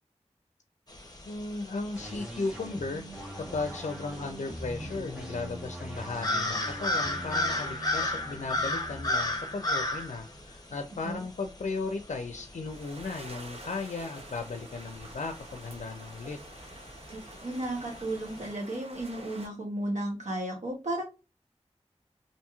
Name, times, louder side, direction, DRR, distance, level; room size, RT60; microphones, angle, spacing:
sound 1, 0.9-18.5, left 2 dB, 35° left, 0.6 m, -36 dB
voice 1, 1.3-3.0 3.4-16.4, left 3 dB, 85° left, 5 dB, 0.4 m, -36 dB
sound 2, 1.9-11.4, right 1 dB, 10° right, 1.0 m, -43 dB
sound 3, 12.7-19.5, right 2 dB, 55° right, 0.7 m, -48 dB
voice 2, 17.4-21.0, right 1 dB, 85° right, -1 dB, 0.9 m, -33 dB
2.9 x 2.6 x 2.3 m, 0.28 s
wide cardioid pair, 55°, 12 cm